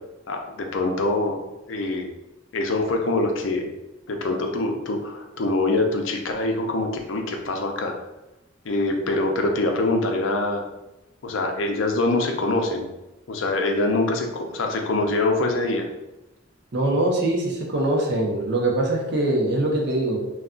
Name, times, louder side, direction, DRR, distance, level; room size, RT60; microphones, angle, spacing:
voice 1, 0.3-1.4 1.7-2.1 2.5-3.7 4.1-7.9 8.6-10.6 11.2-12.9 13.3-15.9, left 2 dB, 65° left, 3 dB, 0.5 m, -24 dB
voice 2, 16.7-20.2, right 1 dB, 55° right, -1 dB, 0.6 m, -23 dB
2.3 x 2.3 x 3.7 m, 0.98 s
head